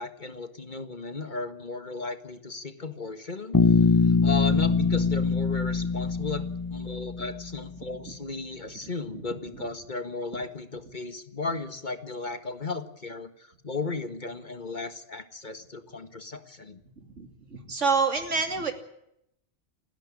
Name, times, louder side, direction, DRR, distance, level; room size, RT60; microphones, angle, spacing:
voice 1, 0.0-3.7 4.0-6.4 6.7-16.8, left 4 dB, 40° left, 9 dB, 1.8 m, -35 dB
Bass guitar, 3.5-7.6, left 4 dB, 20° left, 0.9 m, -23 dB
voice 2, 17.2-18.7, right 4 dB, 85° right, 6 dB, 3.0 m, -27 dB
29.5 x 10.5 x 9.9 m, 0.75 s
omnidirectional pair, 1.2 m